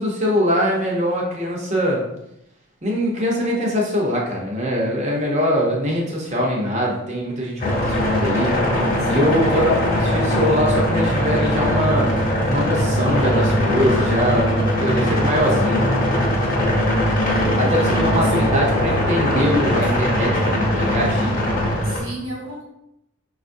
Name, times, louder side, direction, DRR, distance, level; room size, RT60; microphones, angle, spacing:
voice 1, 0.0-2.0 2.8-8.5 9.1-12.1 12.5-16.0 17.6-21.3, equal, 30° right, -3 dB, 0.7 m, -22 dB
sound 1, 7.6-22.0, equal, 40° left, 0.8 m, -20 dB
voice 2, 9.0-9.7 17.2-18.5 19.8-19.9 21.8-22.6, right 1 dB, 75° right, -4 dB, 1.1 m, -33 dB
4.8 x 2.4 x 2.6 m, 0.84 s
head